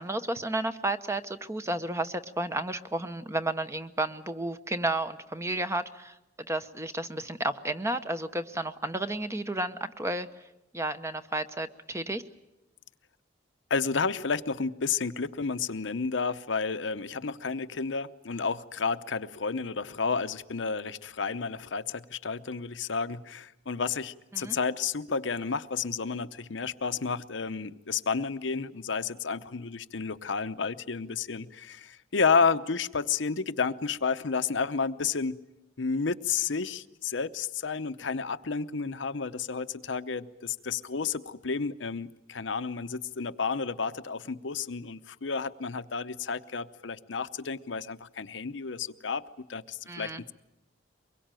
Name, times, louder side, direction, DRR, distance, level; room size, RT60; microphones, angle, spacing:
voice 1, 0.0-6.1 6.5-10.3 10.7-12.2 24.3-24.6 49.9-50.3, right 2 dB, 15° right, 0.9 m, -32 dB
voice 2, 13.7-35.4 35.8-49.2 49.5-50.3, left 5 dB, 75° left, 0.8 m, -31 dB
24.0 x 22.0 x 9.0 m
head